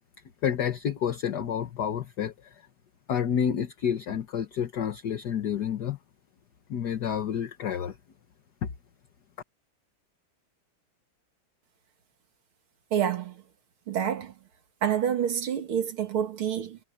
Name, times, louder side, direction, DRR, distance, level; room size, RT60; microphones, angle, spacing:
voice 1, 0.4-2.3 3.1-6.0 6.7-7.9 8.6-8.7, left 8 dB, 55° left, 1.7 m, -29 dB
voice 2, 12.9-13.4 13.9-14.3 14.8-16.8, right 9 dB, 85° right, 2.8 m, -28 dB
omnidirectional pair, 2.3 m